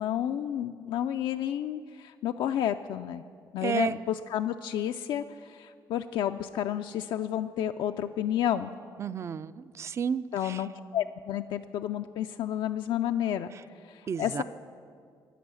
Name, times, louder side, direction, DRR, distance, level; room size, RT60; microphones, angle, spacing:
voice 1, 0.0-3.2 3.5-8.7 10.3-13.5 13.8-14.4, left 10 dB, 80° left, 7 dB, 0.4 m, -31 dB
voice 2, 3.6-4.0 9.0-10.6 14.1-14.4, right 7 dB, 35° right, 17 dB, 0.3 m, -32 dB
14.0 x 6.2 x 9.7 m, 2.2 s
cardioid pair, 140°, 8 cm